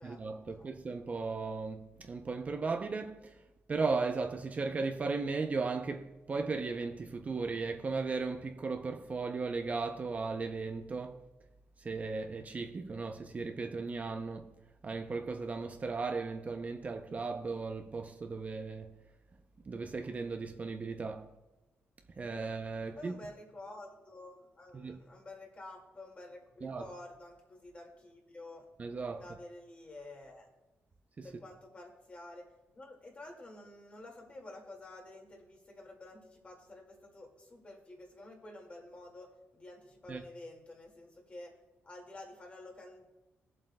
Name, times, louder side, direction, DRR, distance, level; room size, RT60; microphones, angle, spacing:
voice 1, 0.0-3.4 3.7-11.2 11.8-14.5 14.8-19.0 19.7-21.3 22.2-23.1 24.7-25.0 26.6-26.9 28.8-29.2 31.2-31.3 40.1-40.2, right 4 dB, 30° right, 0.5 m, -36 dB
voice 2, 22.8-28.7 29.2-30.5 31.2-32.5 32.7-41.5 41.8-43.0, left 2 dB, 25° left, 2.0 m, -50 dB
20.0 x 7.6 x 2.2 m
wide cardioid pair, 135°, 5 cm